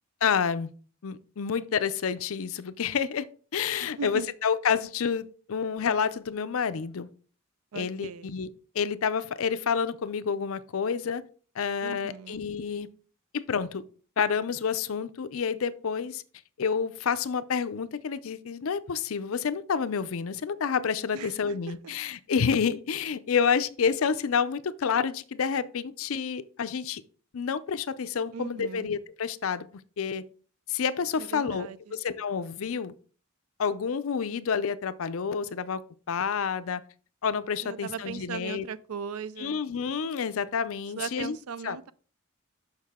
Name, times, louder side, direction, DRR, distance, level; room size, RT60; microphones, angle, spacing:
voice 1, 0.2-0.7 1.0-3.3 3.5-7.1 7.7-8.5 8.7-11.2 11.6-12.9 13.3-13.8 14.2-16.2 16.6-27.0 27.3-29.7 30.0-30.2 30.7-32.9 33.6-35.8 36.1-36.8 37.2-38.7 39.4-41.4 41.6-41.8, left 6 dB, 75° left, 0.5 m, -29 dB
voice 2, 3.8-4.3 7.7-8.3 11.8-12.4 21.1-21.5 28.3-28.9 31.2-32.0 37.6-39.6 41.0-41.9, right 6 dB, 85° right, 0.4 m, -38 dB
6.5 x 6.0 x 3.6 m
head